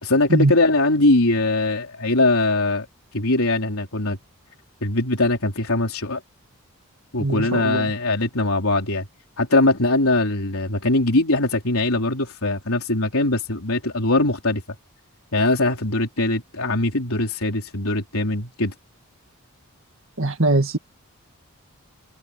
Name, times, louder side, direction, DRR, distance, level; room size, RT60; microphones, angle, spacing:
voice 1, 0.0-2.9 3.1-4.2 4.8-6.2 7.1-9.1 9.4-14.6 15.3-18.7, left 2 dB, 75° left, 3.7 m, -21 dB
voice 2, 7.2-7.9 20.2-20.8, right 2 dB, 60° right, 2.1 m, -21 dB
head